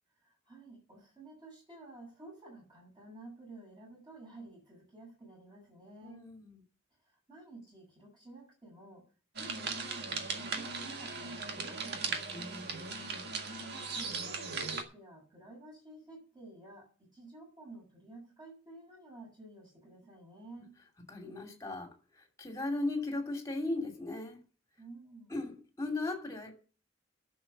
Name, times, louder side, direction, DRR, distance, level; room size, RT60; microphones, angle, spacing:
voice 1, 0.2-6.3 7.1-9.1 9.4-12.3 13.3-20.8 24.8-25.3, right 2 dB, 25° right, 7.6 m, -52 dB
voice 2, 6.0-6.6 12.3-13.3 21.1-24.4 25.3-26.5, left 2 dB, 15° left, 2.7 m, -37 dB
sound 1, 9.4-14.8, right 4 dB, 55° right, 1.8 m, -38 dB
11.5 x 6.7 x 7.2 m
head